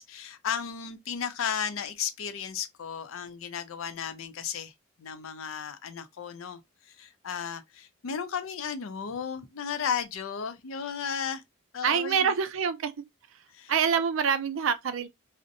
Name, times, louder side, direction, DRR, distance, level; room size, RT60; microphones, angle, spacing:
voice 1, 0.0-4.7 5.0-11.4 11.7-12.3 13.5-13.7, left 7 dB, 75° left, 0.4 m, -34 dB
voice 2, 11.8-12.9 13.7-15.1, right 7 dB, 70° right, 0.4 m, -26 dB
2.6 x 2.1 x 2.5 m
head